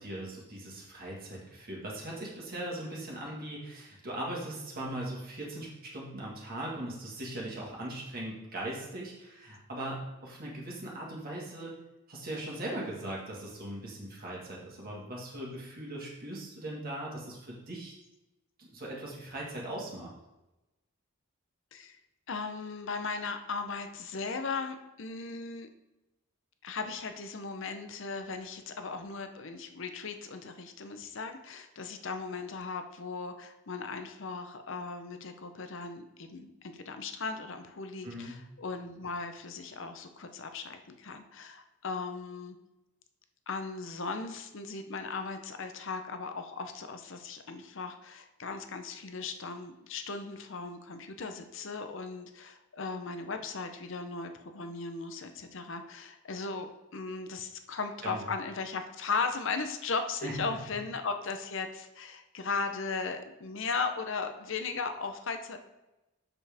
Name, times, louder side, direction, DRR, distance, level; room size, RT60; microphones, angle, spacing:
voice 1, 0.0-11.7 12.1-17.9 18.6-20.1 38.0-38.4 58.0-58.2 60.2-60.3, right 1 dB, 40° right, -3 dB, 1.7 m, -39 dB
voice 2, 22.3-25.7 26.6-42.6 43.5-65.6, left 4 dB, 60° left, 7 dB, 0.7 m, -37 dB
7.1 x 6.9 x 3.5 m, 0.98 s
head